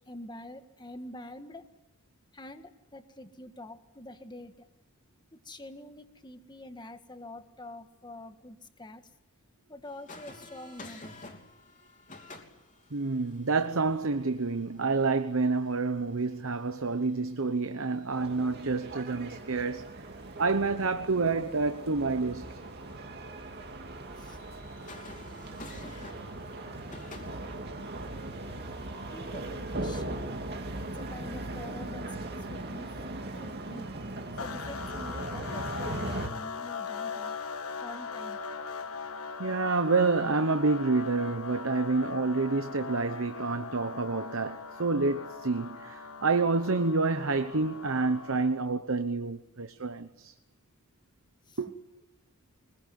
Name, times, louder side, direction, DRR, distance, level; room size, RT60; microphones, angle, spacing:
voice 1, 0.1-1.7 2.3-4.7 5.3-9.1 9.7-11.4 24.2-24.4 29.1-30.4 30.9-32.9 33.4-33.9 34.4-37.4 37.8-38.4 51.5-51.6, left 1 dB, 20° left, 1.8 m, -46 dB
sound 1, 9.9-29.6, left 2 dB, 35° left, 3.1 m, -53 dB
voice 2, 12.9-19.9 20.4-22.5 39.4-50.3 51.6-51.7, right 3 dB, 65° right, 1.0 m, -28 dB
sound 2, 18.1-36.3, right 2 dB, 50° right, 2.5 m, -39 dB
sound 3, 34.4-48.6, left 5 dB, 80° left, 1.4 m, -40 dB
24.5 x 21.5 x 9.5 m
head